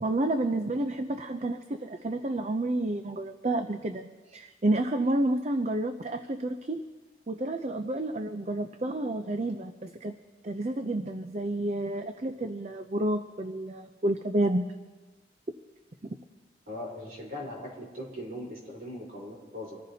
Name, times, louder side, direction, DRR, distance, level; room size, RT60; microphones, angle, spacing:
voice 1, 0.0-6.8 7.3-10.1 10.4-14.7 16.0-16.2, right 1 dB, 40° right, 8 dB, 0.5 m, -30 dB
voice 2, 16.7-19.8, left 1 dB, 55° right, -2 dB, 3.9 m, -40 dB
26.0 x 14.5 x 2.8 m, 1.3 s
head